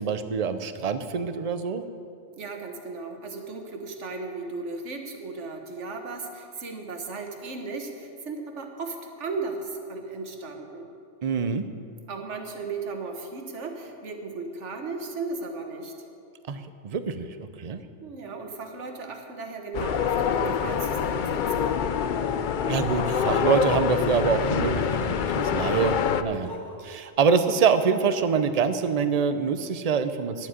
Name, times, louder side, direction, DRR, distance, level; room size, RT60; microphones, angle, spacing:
voice 1, 0.0-1.8 11.2-11.6 16.5-17.8 22.7-26.5 26.8-30.5, right 6 dB, 40° right, 10 dB, 0.6 m, -25 dB
voice 2, 2.4-10.9 12.1-15.9 18.0-21.8, right 3 dB, 70° right, 4 dB, 1.6 m, -36 dB
sound 1, 19.7-26.2, left 7 dB, 60° left, 0.5 m, -26 dB
Laughter, 21.9-25.8 26.3-26.7, left 2 dB, 80° left, 2.3 m, -36 dB
11.0 x 7.6 x 9.7 m, 2.5 s
omnidirectional pair, 1.3 m